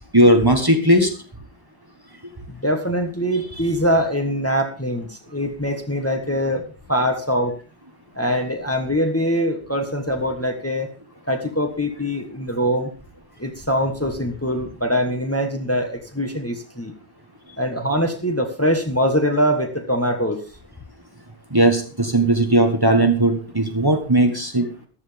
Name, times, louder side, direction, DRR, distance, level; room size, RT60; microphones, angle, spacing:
voice 1, 0.1-1.1 21.5-24.7, right 1 dB, 20° right, 4 dB, 1.4 m, -17 dB
voice 2, 2.6-7.5 8.1-10.9 11.3-12.9 13.4-16.9 17.6-20.4, equal, 15° left, 4 dB, 1.4 m, -23 dB
14.5 x 12.0 x 3.5 m, 0.37 s
omnidirectional pair, 1.1 m